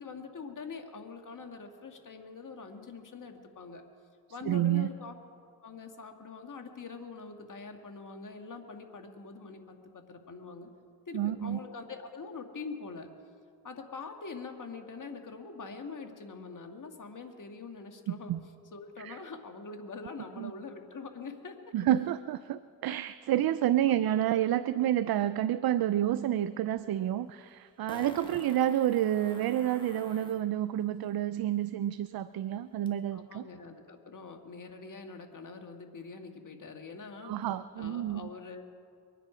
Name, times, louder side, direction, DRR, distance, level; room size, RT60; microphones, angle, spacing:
voice 1, 0.0-3.8 4.3-5.2 5.4-10.7 11.1-13.1 13.6-18.3 18.7-21.7 23.9-24.0 28.1-28.4 33.1-37.3 37.8-38.6, left 4 dB, 45° left, 5 dB, 1.9 m, -44 dB
voice 2, 4.5-4.9 11.1-11.6 18.1-18.4 19.0-19.2 20.4-20.5 21.7-33.5 37.2-38.2, right 12 dB, 55° right, 14 dB, 0.5 m, -29 dB
Fart, 26.8-26.9 27.9-30.4 32.9-33.0, left 1 dB, 10° left, 2.2 m, -48 dB
23.5 x 10.0 x 5.0 m, 2.2 s
cardioid pair, 60°, 44 cm